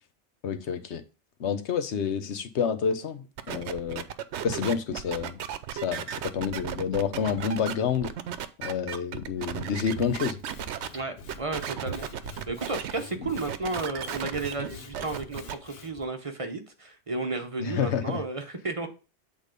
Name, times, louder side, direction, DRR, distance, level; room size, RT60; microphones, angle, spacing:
voice 1, 0.4-1.0 1.4-4.0 4.4-5.4 5.7-8.1 8.6-10.4 17.6-18.2, left 7 dB, 90° left, 1.1 m, -29 dB
sound 1, 3.4-10.9 11.3-12.9 13.2-15.5, right 9 dB, 85° right, 0.9 m, -35 dB
Sawing / Wood, 9.8-16.1, left 6 dB, 65° left, 1.0 m, -46 dB
voice 2, 10.9-18.9, right 3 dB, 35° right, 0.9 m, -33 dB
8.2 x 3.8 x 5.1 m
omnidirectional pair, 1.1 m